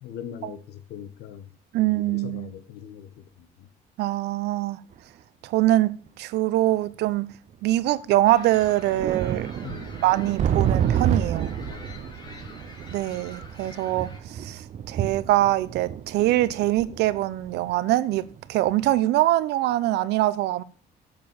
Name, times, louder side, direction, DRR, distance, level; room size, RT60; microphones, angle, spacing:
voice 1, 0.0-1.5 1.7-3.7 9.6-10.0 11.5-12.8, left 9 dB, 80° left, 1.4 m, -42 dB
voice 2, 1.7-2.5 4.0-4.8 5.4-7.3 7.6-9.5 10.0-11.5 12.9-14.6 14.9-20.6, right 15 dB, 80° right, 0.7 m, -23 dB
sound 1, 4.9-5.0 6.1-6.2 7.3-7.4 7.7-7.8 8.3-18.4 18.8-19.0, right 9 dB, 45° right, 0.6 m, -30 dB
sound 2, 8.3-14.2, left 2 dB, 25° left, 2.2 m, -46 dB
10.5 x 6.8 x 7.1 m
cardioid pair, 110°, 17 cm